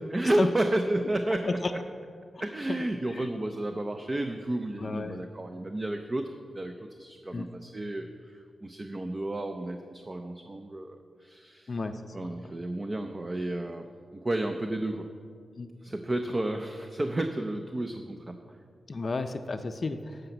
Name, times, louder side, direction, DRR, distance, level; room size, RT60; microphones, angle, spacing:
voice 1, 0.1-1.8 2.4-6.3 6.5-11.7 12.1-15.1 15.8-18.4, right 1 dB, 25° right, 6 dB, 0.5 m, -32 dB
voice 2, 4.8-5.2 7.3-7.5 11.7-12.2 12.4-12.5 15.6-15.7 18.9-20.2, left 3 dB, 40° left, 8 dB, 0.5 m, -32 dB
11.5 x 5.1 x 7.9 m, 2.1 s
wide cardioid pair, 120°, 0 cm